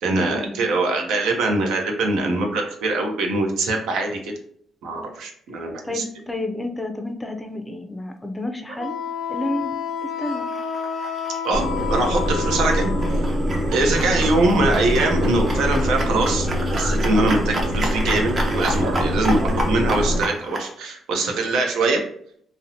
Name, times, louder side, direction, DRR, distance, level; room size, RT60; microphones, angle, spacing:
voice 1, 0.0-4.3 4.8-6.0 11.4-11.6 11.9-12.9 13.7-19.4 19.7-22.0, right 2 dB, 85° right, 2 dB, 0.5 m, -22 dB
voice 2, 5.5-9.0 9.3-9.7 10.0-10.5 14.2-14.8 19.3-19.7, left 1 dB, 10° left, 5 dB, 0.4 m, -31 dB
Wind instrument woodwind instrument, 8.8-13.2, left 7 dB, 80° left, 0.4 m, -30 dB
sound 1, 10.2-20.7, right 1 dB, 40° right, 0.5 m, -32 dB
sound 2, 11.5-20.2, equal, 70° right, 1.1 m, -23 dB
2.6 x 2.0 x 2.7 m, 0.64 s
cardioid pair, 90°, 0 cm